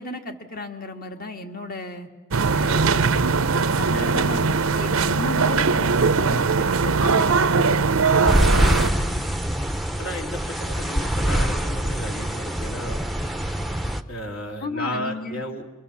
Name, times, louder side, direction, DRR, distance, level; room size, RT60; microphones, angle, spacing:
voice 1, 0.0-2.1 2.5-3.4 3.8-7.9 8.5-9.2 14.6-15.4, left 2 dB, 45° left, 5 dB, 1.8 m, -34 dB
sound 1, 2.3-8.9, right 4 dB, 85° right, 0.8 m, -20 dB
sound 2, 8.2-14.0, equal, ahead, 0.7 m, -24 dB
voice 2, 10.0-13.1 14.1-15.7, equal, 70° left, 2 dB, 2.5 m, -33 dB
26.0 x 23.5 x 7.1 m, 1.2 s
head